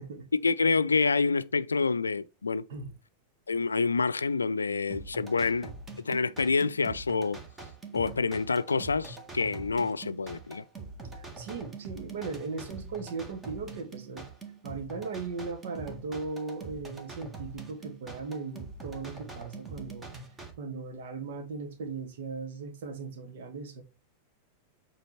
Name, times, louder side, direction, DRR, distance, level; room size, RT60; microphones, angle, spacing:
voice 1, 0.4-2.6 3.5-5.7 6.0-7.4 7.9-10.6, left 4 dB, 75° left, 0.5 m, -27 dB
sound 1, 4.9-20.5, right 4 dB, 15° right, 1.9 m, -44 dB
voice 2, 11.1-14.3 14.6-20.1 20.6-23.8, right 4 dB, 55° right, 1.7 m, -38 dB
8.1 x 4.0 x 4.2 m
figure-of-eight pair, 90°, 0 cm